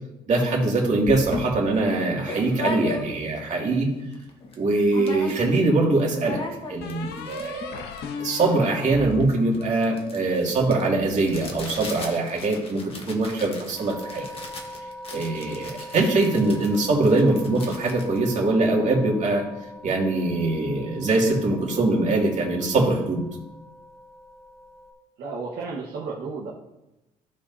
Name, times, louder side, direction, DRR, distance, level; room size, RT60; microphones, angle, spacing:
voice 1, 0.3-3.9 4.6-6.4 6.7-7.8 8.2-14.3 15.1-19.5 19.8-23.2, right 2 dB, 45° right, -2 dB, 2.5 m, -23 dB
sound 1, 1.1-3.4 3.9-4.0 4.1-4.6 4.9-5.7 6.0-19.1, left 2 dB, 35° left, 1.5 m, -37 dB
sound 2, 5.0-5.8 6.8-10.1, left 5 dB, 85° left, 1.0 m, -37 dB
sound 3, 13.8-24.9, left 1 dB, ahead, 2.8 m, -43 dB
voice 2, 25.2-26.5, right 4 dB, 75° right, -4 dB, 1.4 m, -32 dB
15.0 x 5.3 x 2.8 m, 0.94 s
cardioid pair, 110°, 17 cm